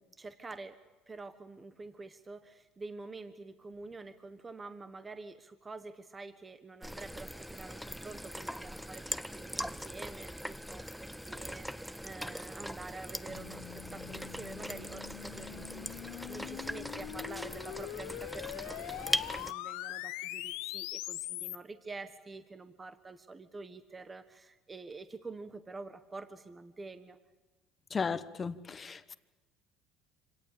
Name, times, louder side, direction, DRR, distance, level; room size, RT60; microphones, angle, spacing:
voice 1, 0.1-0.8 1.1-11.0 11.3-27.2, right 3 dB, 20° right, 10 dB, 1.4 m, -47 dB
sound 1, 6.8-19.5, equal, ahead, 0.7 m, -40 dB
sound 2, 13.3-21.6, left 17 dB, 85° left, 0.9 m, -42 dB
voice 2, 27.9-29.2, left 5 dB, 30° left, 13 dB, 1.2 m, -35 dB
26.0 x 18.0 x 8.7 m, 1.2 s
supercardioid pair, 105°, 0 cm